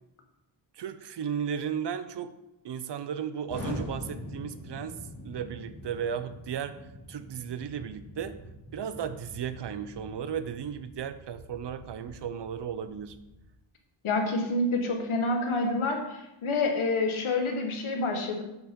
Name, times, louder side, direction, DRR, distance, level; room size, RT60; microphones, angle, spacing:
voice 1, 0.7-2.3 2.6-5.0 5.2-6.8 7.1-8.4 8.7-13.2, right 8 dB, 55° right, 12 dB, 0.6 m, -35 dB
Explosion, 3.5-13.4, left 1 dB, 40° left, 2.9 m, -44 dB
voice 2, 14.0-18.4, left 2 dB, 75° left, 3 dB, 1.5 m, -28 dB
8.1 x 6.8 x 3.7 m, 0.93 s
wide cardioid pair, 145°, 49 cm